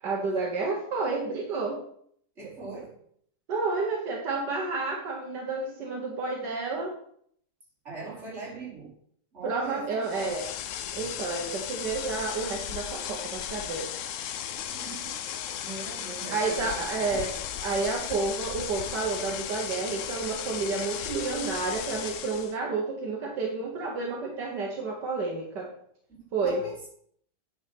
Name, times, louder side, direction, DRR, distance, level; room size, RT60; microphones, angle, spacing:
voice 1, 0.0-1.8 3.5-6.9 9.4-10.4 10.9-13.9 16.3-17.3 17.6-25.7 26.3-26.6, right 3 dB, 75° right, -1 dB, 1.9 m, -30 dB
voice 2, 2.4-3.0 7.8-8.9 9.3-10.4 14.7-17.3 26.4-26.9, right 3 dB, 40° right, -6 dB, 4.1 m, -41 dB
sound 1, 10.0-22.6, left 10 dB, 65° left, 0.8 m, -36 dB
9.4 x 5.5 x 5.9 m, 0.64 s
omnidirectional pair, 1.9 m